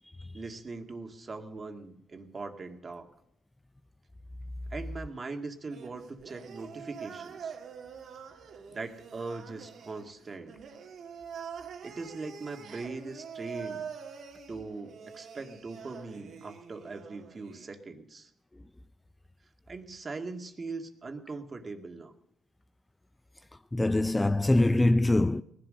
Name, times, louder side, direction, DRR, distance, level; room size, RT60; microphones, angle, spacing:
voice 1, 0.3-3.1 4.7-7.5 8.7-10.5 11.8-13.9 14.5-18.3 19.7-22.1, right 3 dB, 35° right, 2.1 m, -40 dB
sound 1, 5.7-17.7, right 7 dB, 65° right, 2.0 m, -45 dB
voice 2, 23.7-25.4, left 2 dB, 15° left, 0.5 m, -23 dB
19.0 x 11.5 x 6.5 m
cardioid pair, 90°, 0 cm